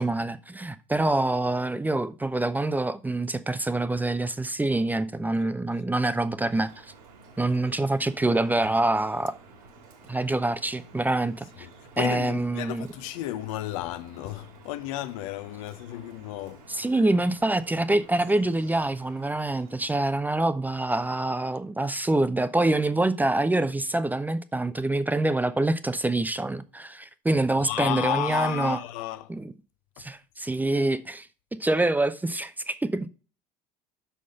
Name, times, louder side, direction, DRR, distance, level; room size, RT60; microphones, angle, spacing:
voice 1, 0.0-6.7 7.4-9.3 10.1-11.7 12.0-12.9 16.7-28.8 29.3-29.4 30.0-31.3 31.6-33.0, right 2 dB, 10° right, 0.6 m, -26 dB
Drip, 6.5-19.8, right 3 dB, 70° right, 2.4 m, -52 dB
voice 2, 12.0-17.0 27.6-29.4 30.0-30.1, left 14 dB, 60° left, 0.7 m, -33 dB
6.3 x 5.7 x 5.3 m
figure-of-eight pair, 70°, 20 cm